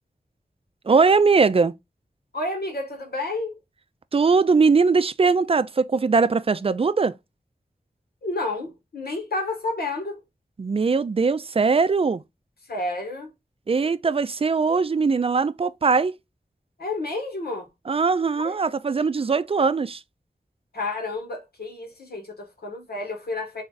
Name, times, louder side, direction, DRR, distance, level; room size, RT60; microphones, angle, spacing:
voice 1, 0.9-1.7 4.1-7.1 10.6-12.2 13.7-16.1 17.9-20.0, right 4 dB, 40° right, 0.4 m, -20 dB
voice 2, 2.3-3.5 8.2-10.2 12.7-13.3 16.8-17.7 18.4-18.5 20.7-23.6, left 2 dB, 85° left, 1.3 m, -30 dB
3.4 x 2.5 x 3.9 m
cardioid pair, 40°, 16 cm